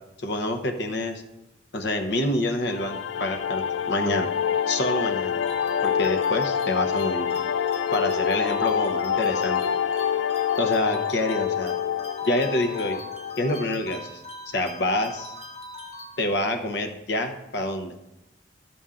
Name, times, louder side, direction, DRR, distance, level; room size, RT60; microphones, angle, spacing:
voice 1, 0.2-1.2 1.7-4.3 4.7-5.4 5.8-7.3 7.9-9.6 10.6-11.8 12.3-13.0 13.4-15.3 16.2-17.9, left 1 dB, 65° left, 7 dB, 0.8 m, -27 dB
sound 1, 2.7-13.8, left 8 dB, 80° left, 0.3 m, -26 dB
sound 2, 5.4-16.6, left 2 dB, 35° left, 1.0 m, -42 dB
12.0 x 7.0 x 3.8 m, 0.93 s
head